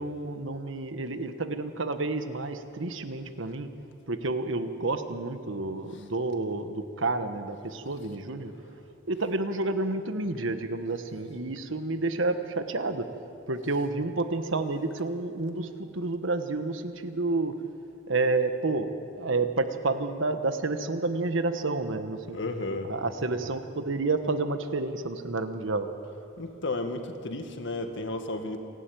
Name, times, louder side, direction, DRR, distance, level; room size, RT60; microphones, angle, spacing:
voice 1, 0.0-3.7 4.1-8.5 9.1-13.1 13.5-17.5 18.1-18.9 19.1-22.4 22.8-25.9, right 3 dB, 70° right, 9 dB, 1.3 m, -30 dB
voice 2, 22.3-22.9 26.4-28.6, left 2 dB, 65° left, 6 dB, 1.8 m, -33 dB
28.0 x 11.5 x 9.3 m, 2.6 s
head